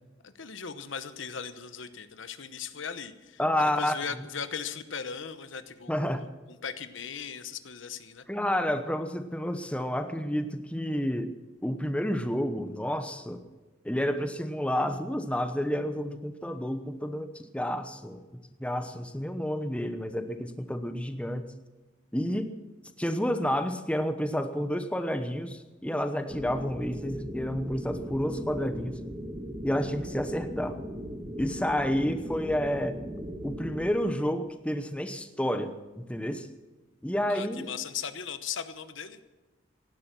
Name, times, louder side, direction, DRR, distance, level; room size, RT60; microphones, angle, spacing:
voice 1, 0.2-5.9 6.2-8.3 37.3-39.2, left 7 dB, 75° left, 12 dB, 1.0 m, -38 dB
voice 2, 3.4-4.0 5.9-6.2 8.3-11.3 11.6-13.4 13.8-18.2 18.6-21.4 22.1-22.5 23.0-29.0 29.6-30.8 31.4-33.0 33.4-36.5 37.0-37.7, equal, 5° left, 9 dB, 0.9 m, -30 dB
sound 1, 26.3-33.9, equal, 15° right, 1.5 m, -38 dB
17.0 x 11.5 x 6.1 m, 1.2 s
head